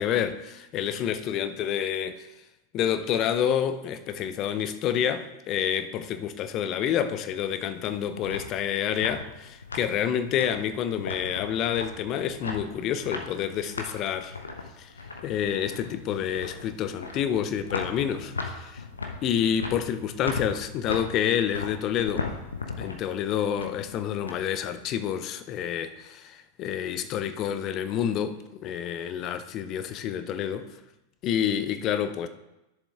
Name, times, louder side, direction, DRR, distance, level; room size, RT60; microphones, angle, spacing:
voice 1, 0.0-2.3 2.7-14.3 14.8-14.9 15.2-18.8 19.2-22.3 22.8-30.7 31.2-32.3, left 9 dB, 35° left, 0.6 m, -28 dB
sound 1, 7.7-24.3, left 3 dB, 75° left, 1.0 m, -38 dB
11.0 x 7.0 x 3.5 m
figure-of-eight pair, 90°, 0 cm